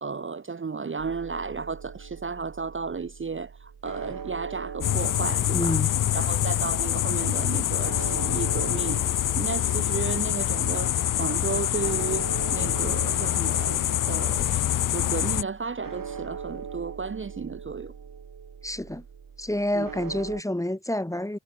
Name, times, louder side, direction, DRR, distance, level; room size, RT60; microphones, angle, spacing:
voice 1, 0.0-3.5 3.8-5.8 6.1-9.0 9.4-14.6 14.9-17.9 19.7-19.8, right 5 dB, 35° right, 0.9 m, -33 dB
sound 1, 1.0-20.4, right 6 dB, 75° right, 5.2 m, -41 dB
sound 2, 4.8-15.4, left 12 dB, 65° left, 0.5 m, -25 dB
voice 2, 5.5-5.9 18.6-19.0 19.4-21.4, left 1 dB, 10° left, 1.4 m, -28 dB
cardioid pair, 70°, 34 cm